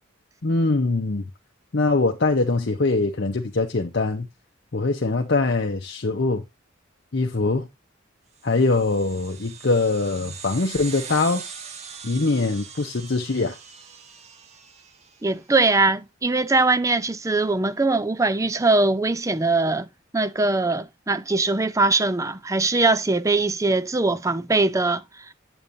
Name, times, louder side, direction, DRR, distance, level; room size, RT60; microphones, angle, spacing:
voice 1, 0.4-1.3 1.7-4.3 4.7-6.4 7.1-7.7 8.4-11.4 12.0-13.6, left 3 dB, 55° left, 0.8 m, -22 dB
sound 1, 8.4-15.3, right 6 dB, 30° right, 1.0 m, -41 dB
voice 2, 15.2-19.9 20.1-25.3, right 3 dB, 15° right, 0.4 m, -21 dB
8.8 x 7.9 x 2.6 m
head